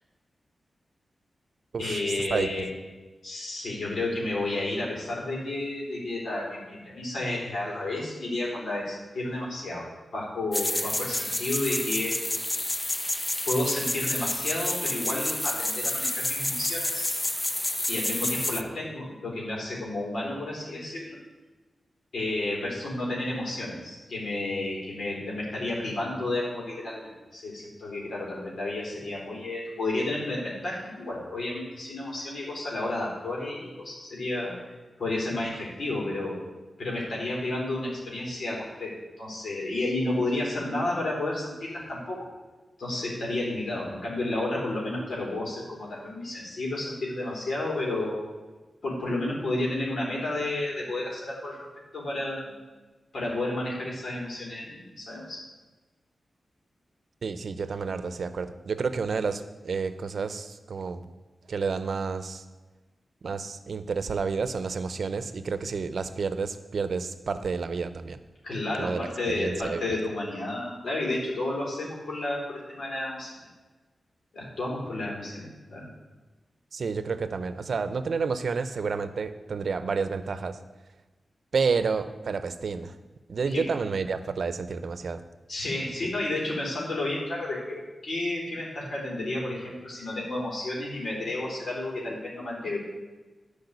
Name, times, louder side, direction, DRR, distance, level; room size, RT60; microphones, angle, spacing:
voice 1, 1.8-2.7 3.2-12.2 13.4-17.2 17.9-21.2 22.1-34.6 35.0-36.4 36.8-42.3 42.8-48.2 48.8-51.6 51.9-52.6 53.1-55.4 68.4-73.4 74.3-75.9 83.4-83.6 85.5-92.8, left 2 dB, 75° left, -3 dB, 4.0 m, -31 dB
sound 1, 10.5-18.6, left 1 dB, 20° left, 0.6 m, -29 dB
voice 2, 57.2-61.0 61.5-62.4 63.2-68.2 68.8-70.0 76.7-80.6 81.5-82.9 83.3-85.2, right 5 dB, 70° right, 11 dB, 0.7 m, -30 dB
10.5 x 5.2 x 8.2 m, 1.2 s
cardioid pair, 70°, 0 cm